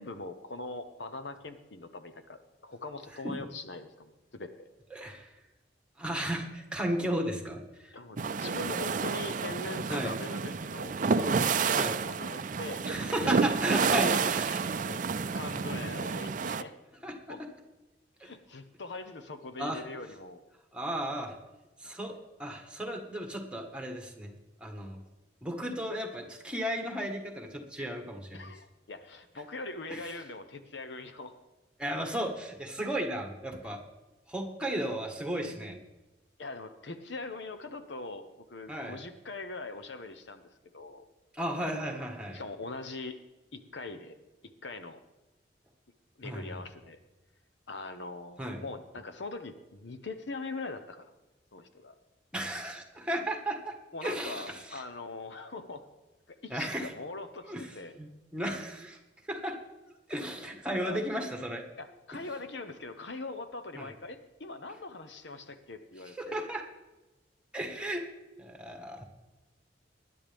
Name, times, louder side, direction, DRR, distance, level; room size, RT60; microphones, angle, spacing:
voice 1, 0.0-4.7 7.9-12.8 14.8-15.0 15.3-16.7 17.3-17.4 18.2-20.4 21.8-22.2 28.3-31.4 34.7-34.8 36.4-41.0 42.3-43.2 43.5-44.2 44.4-45.0 46.2-47.0 47.7-51.1 51.5-51.9 53.9-55.9 56.4-57.9 60.7-61.0 61.8-66.4, left 3 dB, 70° left, 9 dB, 0.9 m, -42 dB
voice 2, 4.9-5.3 6.0-7.9 9.9-10.2 11.7-12.0 12.9-14.6 17.0-17.1 18.2-18.3 19.6-19.8 20.7-21.3 21.8-22.1 22.4-24.3 24.6-25.0 25.4-28.5 29.9-30.1 31.8-33.8 34.3-35.8 38.7-39.0 41.3-42.4 46.2-46.6 48.4-48.6 52.3-53.7 54.0-54.8 56.5-56.9 57.5-59.0 59.3-59.5 60.1-61.6 63.7-63.9 66.2-66.6 67.5-68.0 68.4-69.0, right 1 dB, 5° right, 2 dB, 1.7 m, -34 dB
sound 1, 8.2-16.6, right 5 dB, 45° right, 0.4 m, -30 dB
20.5 x 10.5 x 3.6 m, 1.1 s
head